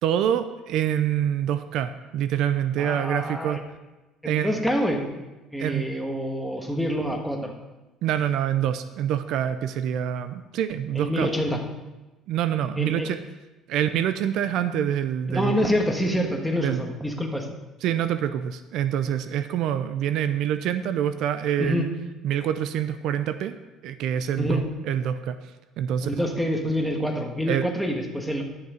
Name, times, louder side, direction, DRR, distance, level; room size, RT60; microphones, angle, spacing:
voice 1, 0.0-3.6 4.2-4.6 5.6-5.8 8.0-11.3 12.3-13.2 13.7-15.7 16.6-16.8 17.8-21.9 22.2-23.5 23.8-25.4 25.8-26.1 27.5-27.7, right 10 dB, 70° right, 11 dB, 0.5 m, -26 dB
voice 2, 2.8-3.6 4.2-5.0 5.5-7.5 10.9-11.6 12.8-13.1 15.3-17.5 21.6-21.9 24.4-24.6 26.0-28.4, equal, ahead, 1 dB, 1.4 m, -26 dB
11.0 x 6.6 x 5.0 m, 1.1 s
cardioid pair, 115°, 0 cm